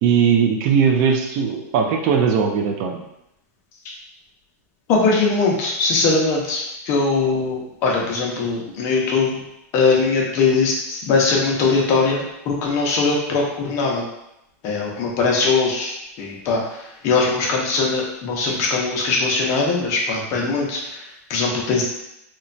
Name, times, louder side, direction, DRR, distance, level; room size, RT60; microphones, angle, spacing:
voice 1, 0.0-3.0, right 6 dB, 35° right, 2 dB, 0.3 m, -19 dB
voice 2, 4.9-9.4 9.7-14.0 14.6-21.0 21.3-21.8, left 4 dB, 30° left, -2 dB, 0.6 m, -21 dB
3.0 x 2.1 x 2.5 m, 0.85 s
supercardioid pair, 165°, 9 cm